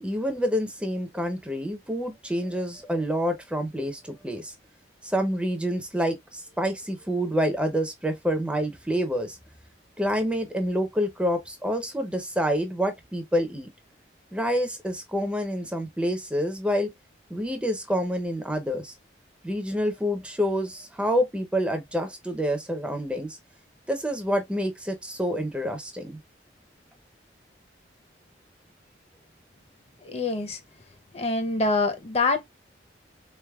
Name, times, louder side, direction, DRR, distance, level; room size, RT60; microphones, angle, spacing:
voice 1, 0.0-4.5 5.0-9.4 10.0-13.7 14.3-16.9 17.3-18.9 19.4-23.4 23.9-26.2, equal, 5° right, 0.5 m, -27 dB
voice 2, 30.0-30.6 31.1-32.4, left 3 dB, 35° left, 0.6 m, -25 dB
3.8 x 3.3 x 2.2 m
head